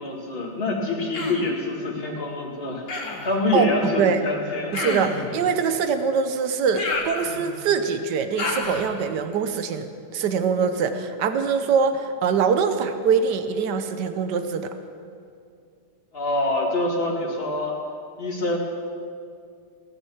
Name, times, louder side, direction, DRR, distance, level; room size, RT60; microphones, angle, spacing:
voice 1, 0.0-4.9 16.1-17.8 18.2-18.6, left 2 dB, 35° left, -1 dB, 2.4 m, -26 dB
Human voice, 1.1-1.5 2.9-3.3 4.7-5.3 6.7-7.6 8.4-8.9, left 3 dB, 90° left, 2.6 m, -29 dB
voice 2, 4.7-14.7, right 6 dB, 85° right, 9 dB, 1.5 m, -23 dB
18.0 x 10.0 x 7.1 m, 2.4 s
omnidirectional pair, 1.8 m